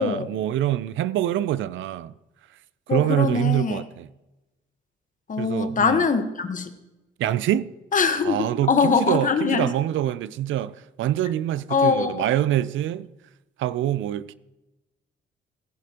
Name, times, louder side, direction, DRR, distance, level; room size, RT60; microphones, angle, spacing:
voice 1, 0.0-2.1 2.9-4.1 5.4-6.1 7.2-7.7 8.2-13.1 13.6-14.3, right 12 dB, 75° right, 0.5 m, -25 dB
voice 2, 2.9-3.8 5.3-6.7 7.9-8.4 8.7-9.7 11.7-12.3, left 5 dB, 40° left, 1.2 m, -22 dB
17.0 x 10.0 x 2.9 m
cardioid pair, 90°, 20 cm